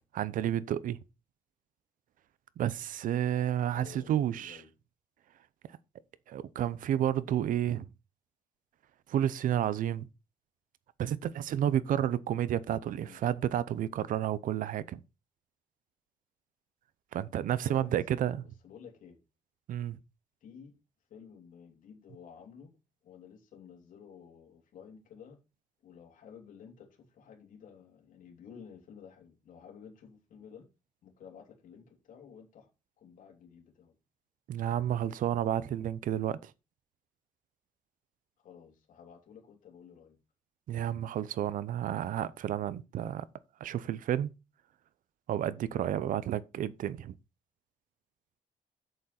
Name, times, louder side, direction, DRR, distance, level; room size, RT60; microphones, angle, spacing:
voice 1, 0.1-1.0 2.6-4.6 6.3-7.9 9.1-10.1 11.0-15.0 17.1-18.4 19.7-20.0 34.5-36.5 40.7-43.2 43.6-44.3 45.3-47.1, right 11 dB, 70° right, 0.7 m, -31 dB
voice 2, 3.7-4.7 12.9-13.2 17.6-19.2 20.4-20.7 21.1-22.8 23.0-25.4 25.8-30.7 31.0-32.7 33.0-34.0 38.4-40.2, left 7 dB, 65° left, 3.0 m, -52 dB
7.9 x 7.7 x 4.3 m
wide cardioid pair, 175°, 14 cm